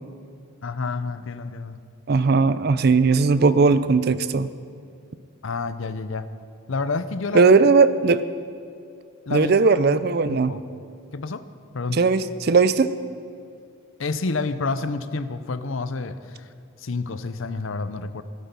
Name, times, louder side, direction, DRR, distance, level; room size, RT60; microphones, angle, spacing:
voice 1, 0.6-1.8 5.4-6.3 6.7-7.5 9.3-9.5 9.9-10.6 11.1-11.4 11.7-12.0 14.0-16.5 16.8-18.2, left 4 dB, 70° left, 12 dB, 0.7 m, -29 dB
voice 2, 2.1-4.5 7.3-8.2 9.3-10.5 11.9-12.9, right 4 dB, 45° right, 14 dB, 0.5 m, -18 dB
15.0 x 13.0 x 5.3 m, 2.4 s
head